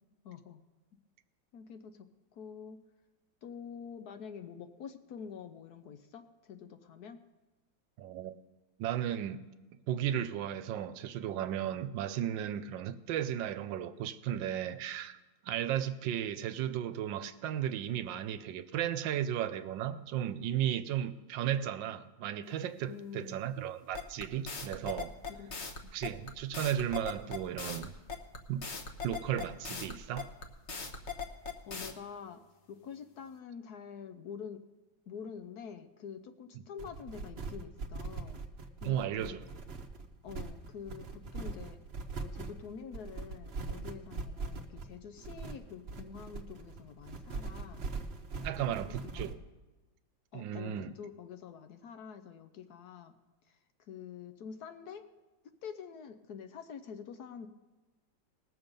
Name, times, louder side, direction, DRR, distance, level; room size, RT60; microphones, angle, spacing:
voice 1, 0.2-0.6 1.5-2.1 2.3-2.8 3.4-7.2 22.8-23.5 25.4-26.0 29.7-30.0 31.7-32.4 32.7-34.6 35.1-38.4 38.8-39.4 40.2-41.8 42.2-47.9 48.4-49.2 50.3-53.1 53.5-53.6 53.9-55.1 55.6-57.5, left 7 dB, 65° left, 1.1 m, -47 dB
voice 2, 8.0-8.3 8.8-9.4 9.9-15.2 15.4-25.1 25.9-27.9 28.5-28.6 29.0-30.3 38.8-39.4 48.4-49.4 50.3-50.9, right 10 dB, 80° right, 1.3 m, -35 dB
sound 1, 23.9-31.9, left 5 dB, 45° left, 1.1 m, -39 dB
sound 2, 36.8-49.3, right 3 dB, 45° right, 0.8 m, -41 dB
19.5 x 7.1 x 5.2 m
omnidirectional pair, 2.0 m